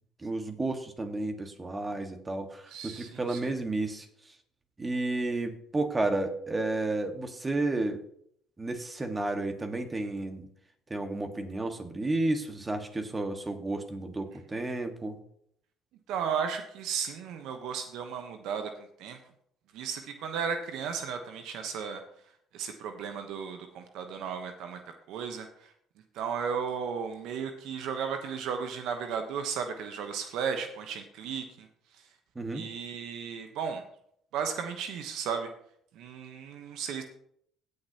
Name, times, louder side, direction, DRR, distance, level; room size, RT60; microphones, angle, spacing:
voice 1, 0.2-4.1 4.8-8.0 8.6-10.5 10.9-15.2 32.3-32.7, right 2 dB, 25° right, 6 dB, 1.7 m, -32 dB
voice 2, 2.7-3.5 16.1-18.7 19.0-19.2 19.7-22.0 22.5-24.8 25.1-25.7 26.1-31.7 32.5-33.8 34.3-35.5 35.9-37.0, right 6 dB, 70° right, 6 dB, 1.0 m, -34 dB
17.0 x 6.6 x 2.9 m, 0.68 s
hypercardioid pair, 65°, 0 cm